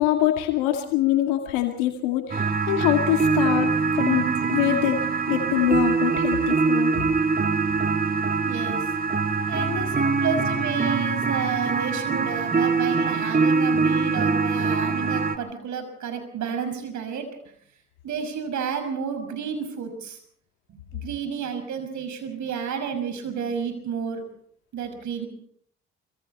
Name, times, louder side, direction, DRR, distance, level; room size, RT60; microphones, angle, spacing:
voice 1, 0.0-5.0 5.3-6.9, left 13 dB, 80° left, 5 dB, 2.2 m, -24 dB
sound 1, 2.3-15.4, right 4 dB, 25° right, 2.3 m, -23 dB
voice 2, 8.4-8.9 9.5-17.3 18.0-20.2 20.7-24.2 24.7-25.3, right 6 dB, 65° right, 7 dB, 6.0 m, -31 dB
25.0 x 24.5 x 4.2 m, 0.63 s
hypercardioid pair, 50°, 32 cm